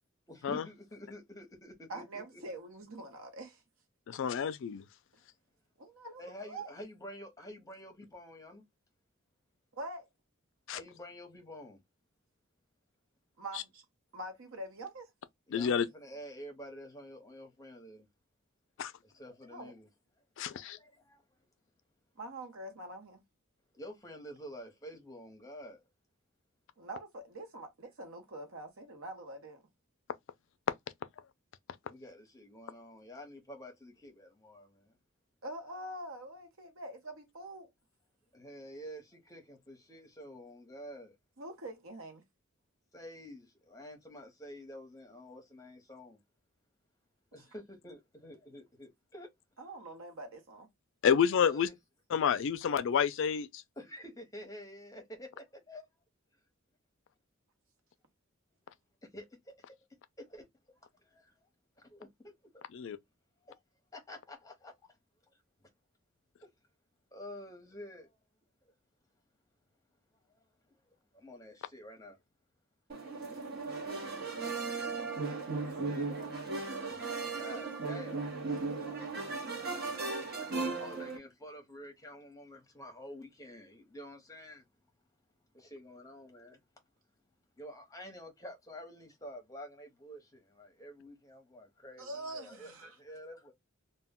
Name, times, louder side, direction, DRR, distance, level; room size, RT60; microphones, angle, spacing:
voice 1, 0.3-2.4 6.2-8.6 10.7-11.8 15.5-18.1 19.0-19.9 20.4-21.2 23.7-25.8 31.8-34.9 38.3-41.1 42.9-46.2 47.3-49.3 51.4-51.8 53.8-55.8 59.1-59.8 60.3-60.4 61.0-61.3 61.8-62.6 63.5-63.6 63.9-65.0 67.1-68.2 70.3-70.4 71.1-72.2 74.7-75.0 76.9-77.0 77.4-78.3 78.6-78.7 80.5-84.6 85.5-86.6 87.6-93.5, equal, 15° left, 0.8 m, -49 dB
voice 2, 1.9-3.6 5.8-6.7 9.7-10.1 13.4-13.8 14.1-15.1 19.5-19.7 22.2-23.2 26.8-29.6 35.4-37.7 41.4-42.2 47.3-47.5 49.6-50.7 92.0-93.0, right 1 dB, 75° right, 0.9 m, -44 dB
voice 3, 4.1-4.8 10.7-10.8 15.5-15.9 18.8-18.9 20.4-20.8 51.0-51.7 52.1-53.5 62.7-63.0, left 7 dB, 60° left, 0.3 m, -29 dB
sound 1, 72.9-81.2, right 3 dB, 50° right, 0.9 m, -36 dB
2.2 x 2.1 x 3.5 m
head